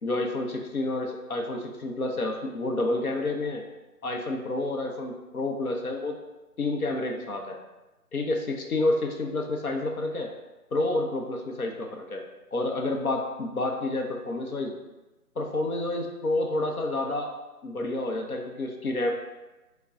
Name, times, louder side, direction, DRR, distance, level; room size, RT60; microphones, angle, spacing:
voice 1, 0.0-3.6 4.0-6.2 6.6-7.6 8.1-10.3 10.7-12.2 12.5-14.7 15.4-17.3 17.6-19.1, left 2 dB, 65° left, 2 dB, 0.8 m, -29 dB
4.7 x 2.3 x 4.7 m, 1.1 s
figure-of-eight pair, 170°, 47 cm